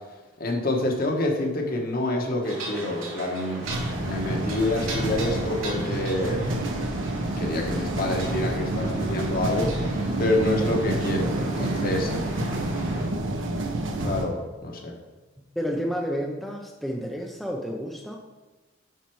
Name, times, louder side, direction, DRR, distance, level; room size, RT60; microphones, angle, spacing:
voice 1, 0.4-3.6 4.0-6.6 7.4-12.1 14.0-14.3 14.6-14.9, left 1 dB, 45° left, 1 dB, 1.3 m, -27 dB
sound 1, 2.4-13.0, right 2 dB, 90° right, 2.6 m, -38 dB
sound 2, 3.6-14.2, right 1 dB, 70° right, 1.1 m, -28 dB
voice 2, 15.6-18.2, equal, ahead, 0 dB, 0.6 m, -30 dB
8.1 x 5.8 x 4.6 m, 1.2 s
head